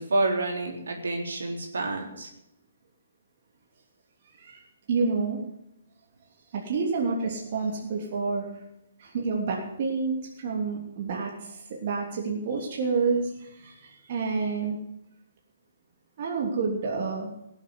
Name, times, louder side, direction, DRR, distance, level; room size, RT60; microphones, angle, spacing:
voice 1, 0.0-2.3, right 2 dB, 75° right, 1 dB, 3.8 m, -28 dB
voice 2, 4.9-5.4 6.5-8.6 9.0-14.8 16.2-17.3, right 4 dB, 50° right, -1 dB, 3.0 m, -29 dB
17.5 x 8.0 x 8.0 m, 0.85 s
figure-of-eight pair, 135°, 0 cm